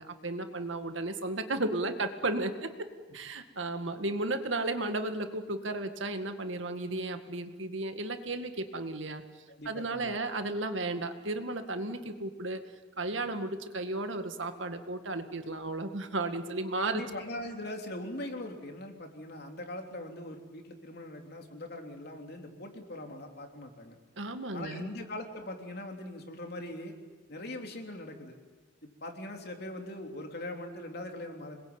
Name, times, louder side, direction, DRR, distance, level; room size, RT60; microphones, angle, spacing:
voice 1, 0.0-2.9 3.1-9.2 9.7-12.6 13.0-17.0 24.2-24.9, right 2 dB, 75° right, 7 dB, 2.0 m, -34 dB
voice 2, 9.5-10.1 16.9-24.0 24.5-26.9 27.3-28.3 28.8-31.6, left 1 dB, 55° left, 3 dB, 3.4 m, -41 dB
27.0 x 21.0 x 8.9 m, 1.3 s
head